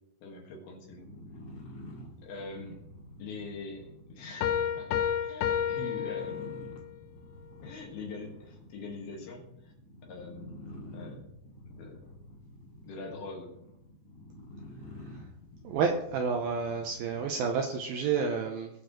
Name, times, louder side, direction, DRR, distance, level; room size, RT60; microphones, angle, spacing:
voice 1, 0.2-1.1 2.2-2.8 3.2-6.4 7.6-9.7 10.1-10.7 10.9-11.3 11.7-12.1 12.8-13.5, left 3 dB, 65° left, 0 dB, 3.4 m, -43 dB
sound 1, 0.8-18.0, left 1 dB, 35° left, 1.6 m, -49 dB
sound 2, 4.4-6.9, left 9 dB, 85° left, 3.0 m, -30 dB
voice 2, 15.6-18.7, right 5 dB, 80° right, 3 dB, 2.2 m, -30 dB
20.0 x 6.7 x 3.1 m, 0.82 s
omnidirectional pair, 5.1 m